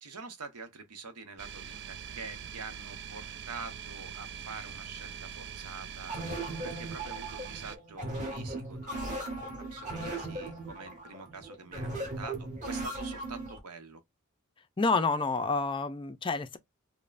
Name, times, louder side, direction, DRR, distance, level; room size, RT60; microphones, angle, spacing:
voice 1, 0.0-6.2 6.6-14.0, right 4 dB, 85° right, 0.9 m, -46 dB
sound 1, 1.4-7.8, right 7 dB, 50° right, 0.4 m, -43 dB
sound 2, 6.1-13.6, right 2 dB, 35° right, 1.9 m, -38 dB
voice 2, 14.8-16.6, left 3 dB, 20° left, 0.4 m, -28 dB
5.2 x 2.1 x 2.5 m
head